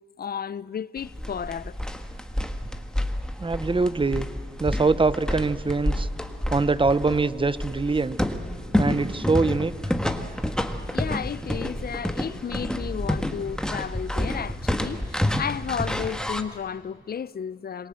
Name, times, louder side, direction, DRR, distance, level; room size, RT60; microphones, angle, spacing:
voice 1, 0.2-1.8 10.9-17.9, left 7 dB, 50° left, 0.5 m, -33 dB
sound 1, 1.0-16.4, left 1 dB, 5° left, 1.7 m, -29 dB
voice 2, 3.4-4.3 4.6-6.1 6.5-8.2 8.8-9.7, right 3 dB, 25° right, 0.8 m, -23 dB
27.0 x 22.0 x 7.6 m
cardioid pair, 70°, 20 cm